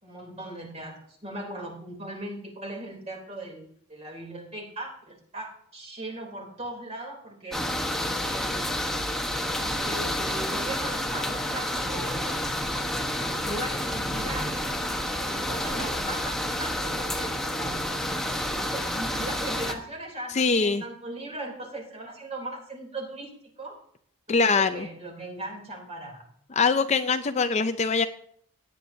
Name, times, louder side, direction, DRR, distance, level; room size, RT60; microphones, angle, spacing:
voice 1, 0.0-7.6 8.2-8.8 9.6-12.3 12.7-14.7 15.2-17.9 18.2-23.3 23.6-23.8 24.3-26.2, right 1 dB, 30° right, 2 dB, 3.2 m, -38 dB
sound 1, 7.5-19.7, left 1 dB, ahead, 1.1 m, -29 dB
voice 2, 20.3-20.8 24.3-24.9 26.6-28.1, left 4 dB, 30° left, 10 dB, 0.5 m, -23 dB
17.5 x 10.0 x 2.7 m, 0.65 s
head